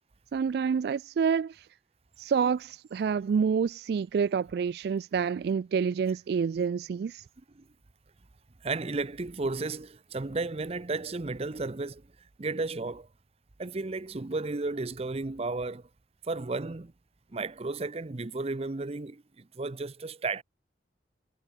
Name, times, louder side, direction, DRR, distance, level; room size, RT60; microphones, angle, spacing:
voice 1, 0.3-1.7 2.2-7.2, right 6 dB, 65° right, 0.3 m, -28 dB
voice 2, 8.6-12.1 12.4-13.1 13.6-15.9 16.2-16.9 17.3-20.4, right 3 dB, 35° right, 0.7 m, -33 dB
head